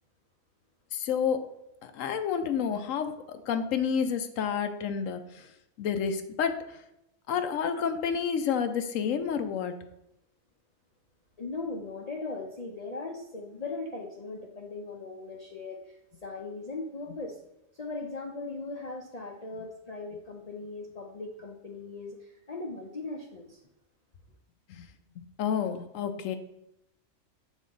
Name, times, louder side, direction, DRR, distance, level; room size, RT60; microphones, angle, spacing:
voice 1, 0.9-1.4 1.8-5.5 5.8-6.6 7.3-9.7 24.7-24.9 25.2-26.4, left 7 dB, 80° left, 8 dB, 1.0 m, -30 dB
voice 2, 11.4-17.4 17.7-23.6, left 3 dB, 45° left, -1 dB, 0.6 m, -39 dB
6.3 x 4.0 x 3.9 m, 0.87 s
omnidirectional pair, 1.4 m